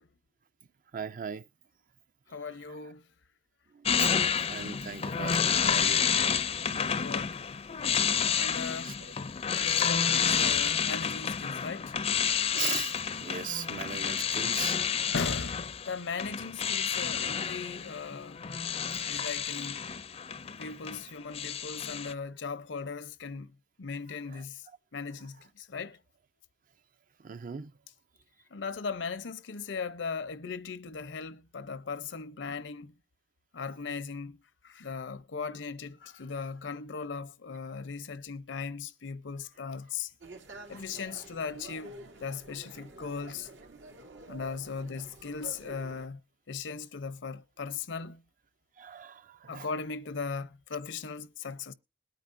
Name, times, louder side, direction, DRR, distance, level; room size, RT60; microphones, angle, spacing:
voice 1, 0.9-1.4 2.4-2.9 3.7-4.2 4.5-6.1 8.0-8.3 8.8-9.1 12.5-15.0 24.3-24.4 27.2-27.7 40.5-41.0 48.8-49.7, right 7 dB, 45° right, 0.5 m, -40 dB
voice 2, 2.3-3.0 6.6-7.4 8.3-9.0 9.5-11.9 15.1-18.5 19.1-19.9 20.6-24.7 24.9-26.0 28.5-32.9 33.5-34.4 34.6-40.1 40.7-41.9 42.2-43.5 44.3-46.2 46.5-48.2 49.5-51.7, left 5 dB, 75° left, 0.7 m, -38 dB
sound 1, 3.9-21.0 21.3-22.1, left 7 dB, 35° left, 0.5 m, -30 dB
sound 2, 40.2-46.1, right 3 dB, 90° right, 2.5 m, -49 dB
21.0 x 9.2 x 2.5 m
head